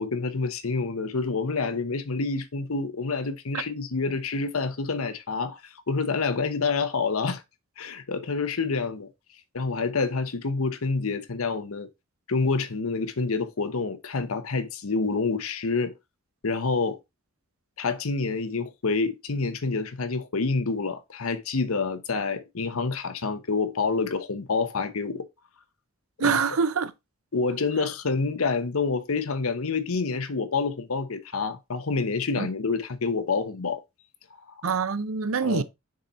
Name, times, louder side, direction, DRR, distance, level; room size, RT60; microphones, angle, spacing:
voice 1, 0.0-7.4 7.8-9.1 9.5-11.9 12.3-16.0 16.4-17.0 17.8-25.3 26.2-26.4 27.3-33.8 34.5-34.7 35.4-35.6, left 4 dB, 85° left, 0.9 m, -28 dB
voice 2, 26.2-26.9 32.4-32.5 34.6-35.6, right 5 dB, 80° right, 0.6 m, -25 dB
6.5 x 4.2 x 4.2 m
head